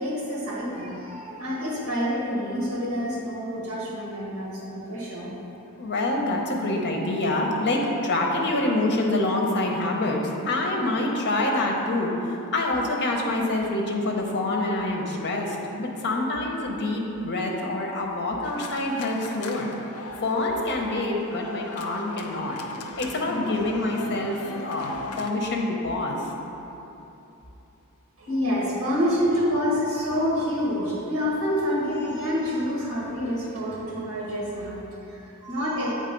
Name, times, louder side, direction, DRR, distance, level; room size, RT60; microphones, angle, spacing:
voice 1, 0.0-5.3 28.2-35.9, equal, 70° right, -5 dB, 1.6 m, -27 dB
voice 2, 5.8-19.7 20.2-22.6 23.0-26.3, left 2 dB, 50° left, 0 dB, 0.9 m, -26 dB
sound 1, 18.4-25.3, left 3 dB, 75° left, 0.6 m, -38 dB
8.1 x 3.8 x 5.2 m, 3.0 s
head